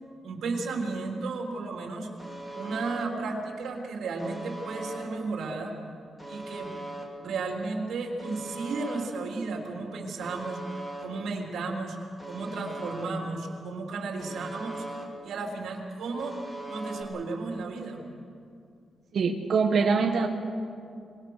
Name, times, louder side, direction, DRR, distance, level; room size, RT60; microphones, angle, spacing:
voice 1, 0.2-2.1 2.5-5.8 6.3-6.7 7.2-12.0 12.3-14.8 15.2-16.4 16.7-18.0, right 3 dB, 75° right, 0 dB, 3.7 m, -34 dB
Alarm, 2.2-3.0 4.2-5.0 6.2-7.0 8.2-9.0 10.2-11.0 12.2-13.0 14.2-15.0 16.2-17.0, right 2 dB, 10° left, 2.9 m, -40 dB
voice 2, 19.1-20.3, right 5 dB, 50° right, 2 dB, 1.4 m, -23 dB
24.5 x 20.5 x 6.6 m, 2.4 s
wide cardioid pair, 175°, 0 cm